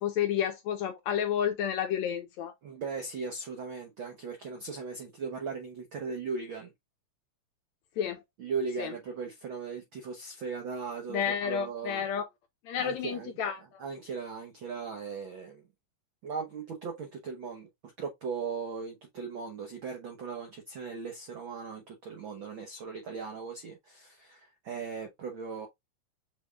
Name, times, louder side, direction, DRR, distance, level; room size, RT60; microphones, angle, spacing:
voice 1, 0.0-2.5 8.0-8.2 8.8-8.9 11.1-12.3 12.6-13.8, left 8 dB, 75° left, 1.7 m, -31 dB
voice 2, 2.6-6.7 8.4-12.1 12.8-13.3 13.8-15.6 16.2-25.7, right 5 dB, 85° right, 1.1 m, -38 dB
7.0 x 3.4 x 2.3 m
omnidirectional pair, 3.8 m